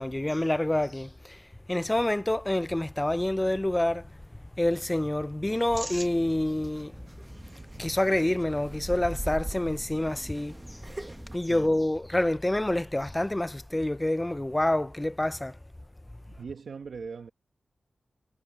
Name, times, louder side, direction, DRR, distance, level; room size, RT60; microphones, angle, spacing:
voice 1, 0.0-1.4 1.7-4.1 4.6-6.9 7.8-11.1 11.3-15.6, left 1 dB, 10° left, 0.3 m, -27 dB
sound 1, 5.7-11.4, right 2 dB, 20° right, 0.9 m, -41 dB
voice 2, 11.5-11.8 16.3-17.3, right 5 dB, 75° right, 1.0 m, -40 dB
wide cardioid pair, 145°, 0 cm